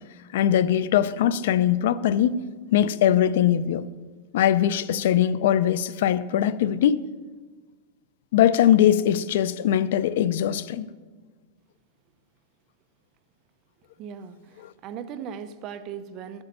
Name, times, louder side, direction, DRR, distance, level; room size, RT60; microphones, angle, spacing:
voice 1, 0.3-2.3 2.7-3.8 4.3-7.0 8.3-10.9 14.6-14.7, left 10 dB, 70° left, 0.5 m, -21 dB
voice 2, 14.0-16.4, right 8 dB, 35° right, 0.7 m, -38 dB
12.0 x 8.1 x 6.7 m
supercardioid pair, 160°, 0 cm